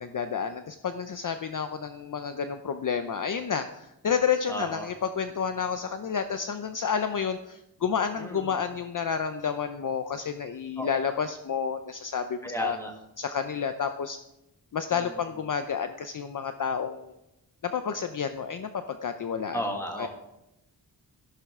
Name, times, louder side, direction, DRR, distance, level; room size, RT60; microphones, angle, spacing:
voice 1, 0.0-12.8 13.2-14.2 14.7-17.1 17.6-19.6 20.0-20.1, left 7 dB, 50° left, 8 dB, 0.6 m, -30 dB
voice 2, 4.5-4.9 8.2-8.6 10.8-10.9 12.4-12.9 14.9-15.1 19.5-20.1, equal, 5° left, 1 dB, 1.9 m, -33 dB
14.5 x 11.5 x 3.6 m, 0.89 s
wide cardioid pair, 170°, 43 cm